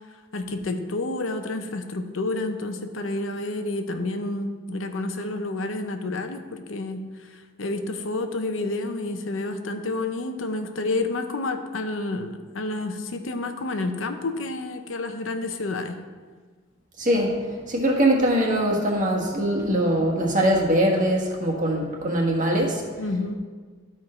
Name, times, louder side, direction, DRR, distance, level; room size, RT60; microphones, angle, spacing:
voice 1, 0.3-15.9 23.0-23.3, left 2 dB, 85° left, 6 dB, 0.8 m, -29 dB
voice 2, 17.0-22.8, right 1 dB, 40° right, -1 dB, 1.5 m, -22 dB
12.5 x 4.6 x 4.3 m, 1.5 s
head